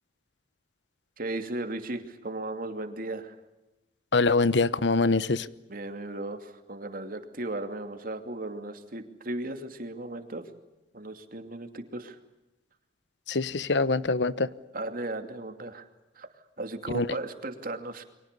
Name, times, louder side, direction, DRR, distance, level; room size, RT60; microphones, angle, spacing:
voice 1, 1.2-3.3 5.7-10.5 10.9-12.2 14.7-15.8 16.2-16.3 16.6-18.0, right 2 dB, 55° right, 7 dB, 2.7 m, -36 dB
voice 2, 4.1-5.5 13.3-14.5 16.9-17.1, left 3 dB, 85° left, 17 dB, 1.0 m, -24 dB
30.0 x 24.0 x 6.9 m, 0.99 s
head